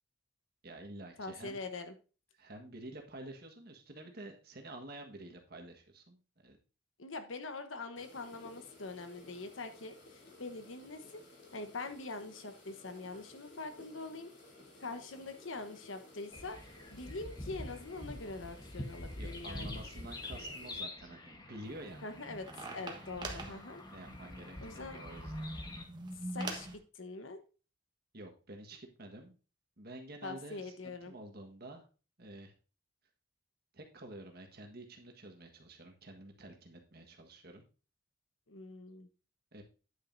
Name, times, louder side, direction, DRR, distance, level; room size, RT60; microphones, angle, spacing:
voice 1, 0.6-1.6 2.3-6.6 19.2-22.0 23.9-25.5 28.1-29.3 29.8-31.8 32.2-32.5 33.7-37.6 39.5-39.6, right 1 dB, 50° right, 3 dB, 1.5 m, -49 dB
voice 2, 1.2-1.9 7.0-11.2 11.5-14.3 14.8-16.6 16.9-19.8 22.0-22.5 22.7-23.8 24.6-25.0 26.3-27.4 30.2-31.1 38.5-39.1, left 3 dB, 80° left, 7 dB, 1.1 m, -44 dB
sound 1, 8.0-20.8, left 2 dB, 60° left, 3.3 m, -57 dB
sound 2, 16.3-25.8, left 1 dB, 20° left, 1.2 m, -46 dB
sound 3, 21.6-26.8, right 2 dB, 25° right, 1.3 m, -44 dB
9.5 x 8.9 x 2.7 m, 0.35 s
head